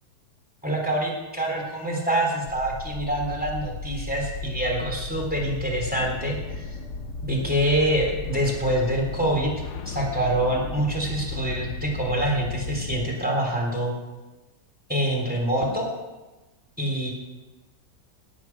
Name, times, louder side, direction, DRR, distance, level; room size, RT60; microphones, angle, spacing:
voice 1, 0.6-6.8 7.2-9.5 9.9-13.9 14.9-15.9 16.8-17.1, right 1 dB, 5° right, -1 dB, 3.5 m, -25 dB
sound 1, 2.5-13.1, left 3 dB, 55° left, 0.9 m, -35 dB
17.5 x 8.6 x 6.1 m, 1.1 s
omnidirectional pair, 1.9 m